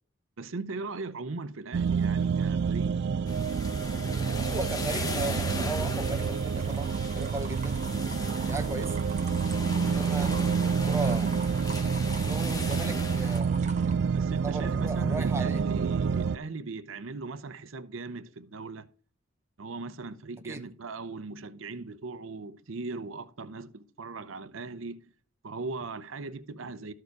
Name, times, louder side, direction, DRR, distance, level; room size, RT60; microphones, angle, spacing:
voice 1, 0.4-3.0 10.3-10.7 14.1-18.9 19.6-25.1 25.4-26.9, right 3 dB, 90° right, 0.7 m, -39 dB
sound 1, 1.7-16.4, right 6 dB, 60° right, 0.3 m, -28 dB
sound 2, 3.3-13.4, left 2 dB, 20° left, 1.0 m, -38 dB
voice 2, 4.4-7.8 8.5-9.0 9.8-11.3 12.2-13.5 14.4-15.6 20.4-20.7, right 2 dB, 15° right, 0.9 m, -37 dB
sound 3, 6.6-13.9, right 3 dB, 40° right, 1.1 m, -45 dB
13.0 x 4.7 x 4.7 m
head